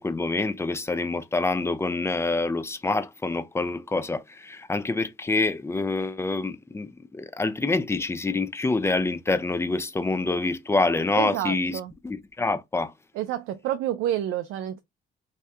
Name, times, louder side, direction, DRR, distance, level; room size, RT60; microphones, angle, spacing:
voice 1, 0.0-12.9, left 3 dB, 15° left, 0.4 m, -26 dB
voice 2, 11.2-11.9 13.1-14.8, right 12 dB, 85° right, 0.4 m, -29 dB
2.7 x 2.3 x 3.2 m
cardioid pair, 90°, 20 cm